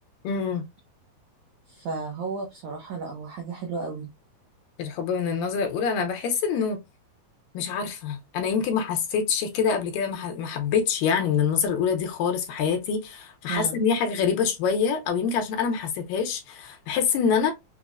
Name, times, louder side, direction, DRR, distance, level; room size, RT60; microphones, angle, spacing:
voice 1, 0.2-0.6 4.8-6.8 7.5-17.5, left 6 dB, 75° left, 2.2 m, -25 dB
voice 2, 1.7-4.1 13.5-13.7, right 4 dB, 85° right, 1.6 m, -33 dB
6.1 x 2.0 x 2.4 m
omnidirectional pair, 4.3 m